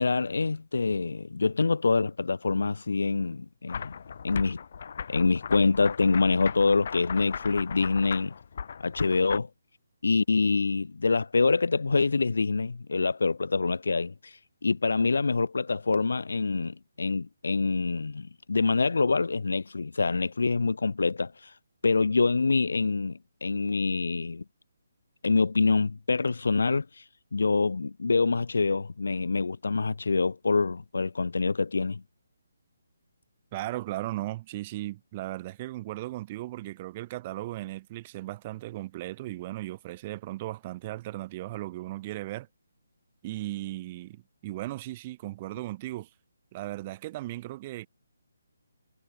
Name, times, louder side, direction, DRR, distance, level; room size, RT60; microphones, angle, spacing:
voice 1, 0.0-3.9 4.2-4.6 5.1-8.3 8.8-9.5 10.0-14.3 14.6-21.3 21.8-24.4 25.2-26.9 27.3-32.0, left 4 dB, 75° left, 1.1 m, -25 dB
sound 1, 3.7-9.4, left 6 dB, 35° left, 4.6 m, -38 dB
voice 2, 33.5-42.5 43.2-46.1 46.5-47.9, right 17 dB, 15° right, 1.0 m, -36 dB
hypercardioid pair, 180°, 0 cm